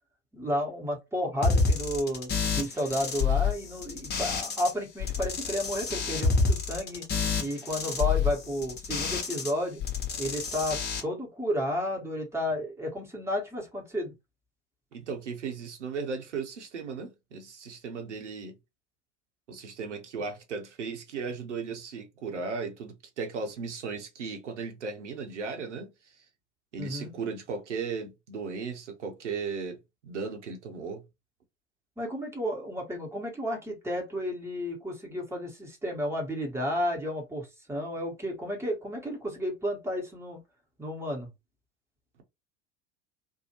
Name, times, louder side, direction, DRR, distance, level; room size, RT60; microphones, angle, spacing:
voice 1, 0.3-7.1 7.4-9.8 10.2-14.1 26.8-27.1 32.0-40.4 40.8-41.3, equal, 5° right, 1.2 m, -32 dB
sound 1, 1.4-4.7 5.0-9.5 9.8-11.0, left 4 dB, 30° left, 0.9 m, -28 dB
voice 2, 14.9-18.6 19.5-26.2 26.7-29.8 30.0-31.0, right 5 dB, 80° right, 0.8 m, -36 dB
2.6 x 2.1 x 2.9 m
figure-of-eight pair, 75°, 35 cm